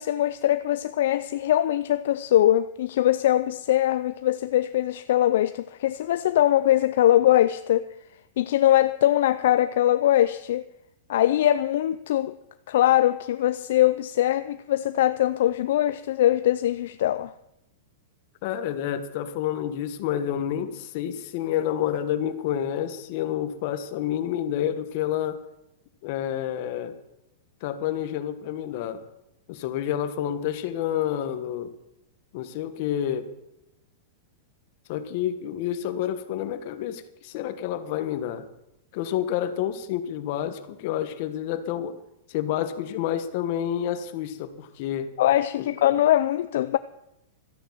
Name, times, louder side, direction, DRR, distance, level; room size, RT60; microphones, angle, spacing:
voice 1, 0.0-7.9 8.4-10.6 11.1-12.4 12.7-17.3 45.2-46.8, left 12 dB, 65° left, 0.4 m, -22 dB
voice 2, 18.4-25.4 26.0-26.9 27.6-29.0 29.5-31.7 32.3-33.3 34.9-38.5 38.9-42.0 42.3-45.1 45.6-45.7, left 10 dB, 45° left, 1.3 m, -29 dB
13.5 x 10.0 x 7.3 m
supercardioid pair, 160°, 0 cm